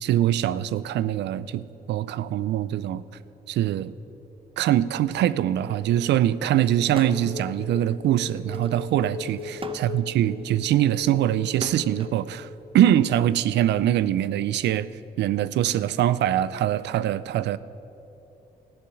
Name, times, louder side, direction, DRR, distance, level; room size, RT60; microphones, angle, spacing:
voice 1, 0.0-3.0 3.5-3.9 4.6-12.5 12.7-14.9 15.2-17.6, right 12 dB, 85° right, 17 dB, 0.4 m, -23 dB
sound 1, 4.3-13.2, left 5 dB, 45° left, 1.9 m, -41 dB
sound 2, 6.9-7.4 7.8-12.2 13.1-14.7, right 3 dB, 30° right, 0.9 m, -40 dB
13.5 x 6.8 x 9.8 m, 2.9 s
cardioid pair, 65°, 17 cm